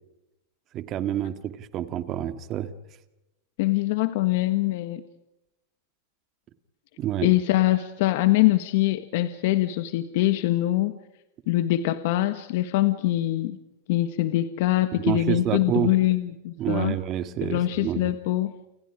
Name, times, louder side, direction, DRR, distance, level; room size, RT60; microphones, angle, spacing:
voice 1, 0.7-2.7 7.0-7.3 14.9-15.9 16.6-18.1, right 11 dB, 35° right, 11 dB, 2.1 m, -28 dB
voice 2, 3.6-5.0 7.2-10.9 11.5-13.6 13.9-17.0 17.4-18.5, left 16 dB, 60° left, 10 dB, 1.5 m, -23 dB
30.0 x 29.5 x 5.1 m, 0.91 s
supercardioid pair, 140°, 0 cm